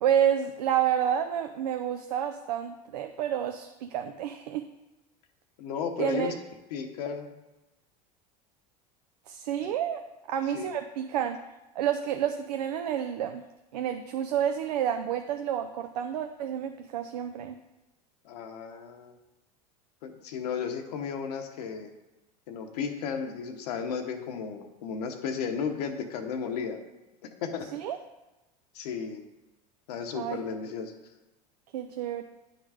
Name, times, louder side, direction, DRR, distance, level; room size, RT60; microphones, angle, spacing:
voice 1, 0.0-4.6 6.0-6.3 9.3-10.0 10.3-11.4 11.8-13.4 13.7-17.6 27.7-28.0 30.1-30.4 31.7-32.2, right 9 dB, 90° right, 7 dB, 0.5 m, -29 dB
voice 2, 5.6-6.3 6.7-7.3 9.6-9.7 10.5-10.7 18.2-19.2 20.0-21.9 22.5-26.8 27.2-27.7 28.7-29.2 29.9-30.9, left 6 dB, 85° left, 5 dB, 1.1 m, -34 dB
9.9 x 4.0 x 4.9 m, 1.0 s
supercardioid pair, 110°, 20 cm